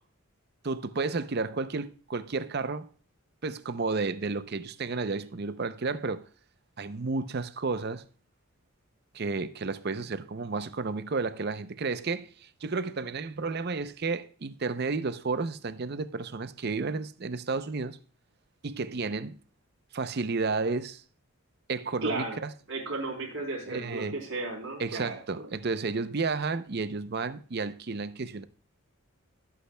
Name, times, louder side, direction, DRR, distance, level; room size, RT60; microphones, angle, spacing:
voice 1, 0.6-2.9 3.4-6.3 6.8-8.0 9.1-18.0 18.6-19.4 19.9-21.0 21.7-22.5 23.7-24.2 24.8-28.4, right 4 dB, 45° right, 0.6 m, -32 dB
voice 2, 22.0-22.4 22.7-25.5, right 2 dB, 60° right, 3.7 m, -34 dB
17.5 x 8.4 x 2.2 m
head